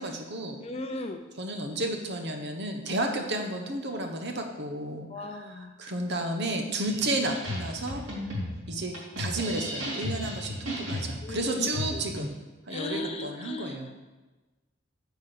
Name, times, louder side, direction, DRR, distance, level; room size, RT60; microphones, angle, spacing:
voice 1, 0.0-0.6 1.3-8.0 8.7-12.3 12.7-13.9, right 1 dB, 55° right, 4 dB, 1.2 m, -32 dB
voice 2, 0.6-1.2 5.1-5.7 11.2-11.7 12.7-13.8, left 3 dB, 30° left, 6 dB, 0.5 m, -36 dB
sound 1, 6.8-12.3, left 1 dB, 80° right, 2.8 m, -35 dB
9.0 x 4.7 x 6.7 m, 1.2 s
head